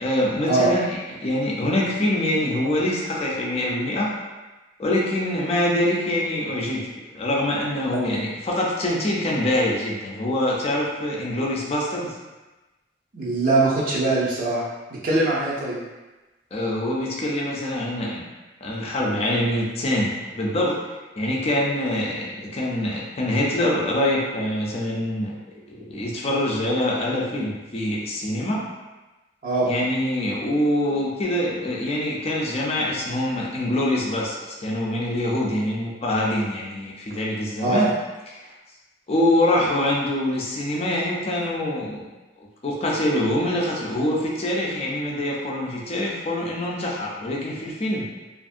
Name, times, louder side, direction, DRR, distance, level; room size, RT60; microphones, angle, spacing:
voice 1, 0.0-4.1 4.8-12.1 16.5-18.2 18.6-20.7 21.2-25.4 25.7-28.6 29.6-37.9 38.3-38.5 39.1-42.1 42.6-48.0, left 1 dB, 35° left, -3 dB, 0.4 m, -24 dB
voice 2, 13.1-14.6 15.0-15.8 29.4-29.7 37.6-37.9, right 2 dB, 55° right, -6 dB, 0.7 m, -21 dB
2.6 x 2.5 x 2.4 m, 1.1 s
head